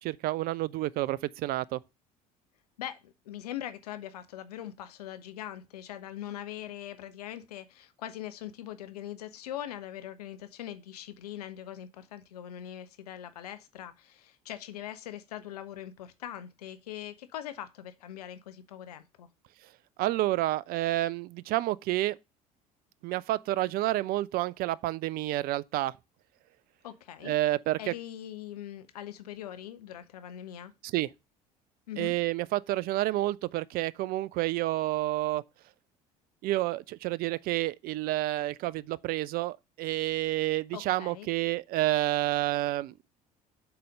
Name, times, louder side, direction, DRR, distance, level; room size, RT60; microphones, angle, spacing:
voice 1, 0.0-1.8 20.0-22.2 23.0-25.9 27.2-27.9 30.8-31.1 32.0-35.4 36.4-42.9, right 16 dB, 50° right, 0.4 m, -29 dB
voice 2, 2.8-19.3 26.8-27.4 27.8-30.7 31.9-32.1 40.7-41.3, left 11 dB, 80° left, 0.7 m, -42 dB
6.7 x 4.1 x 6.5 m
hypercardioid pair, 65°, 20 cm